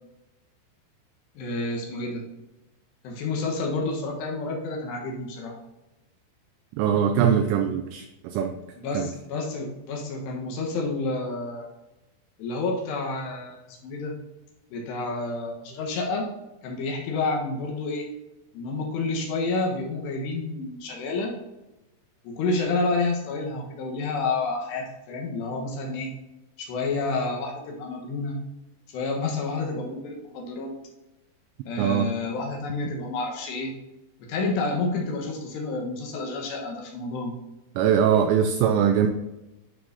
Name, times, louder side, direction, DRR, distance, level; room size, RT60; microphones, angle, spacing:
voice 1, 1.4-2.3 3.0-5.6 8.8-11.7 12.4-14.2 14.7-16.3 16.6-18.1 18.5-21.3 22.2-26.1 26.6-28.4 28.9-30.7 31.7-33.7 34.2-37.4, left 3 dB, 70° left, 0 dB, 3.1 m, -29 dB
voice 2, 6.8-8.5 9.0-9.1 31.8-32.1 37.8-39.1, right 8 dB, 85° right, 5 dB, 2.7 m, -22 dB
11.5 x 4.8 x 2.7 m, 0.98 s
omnidirectional pair, 5.4 m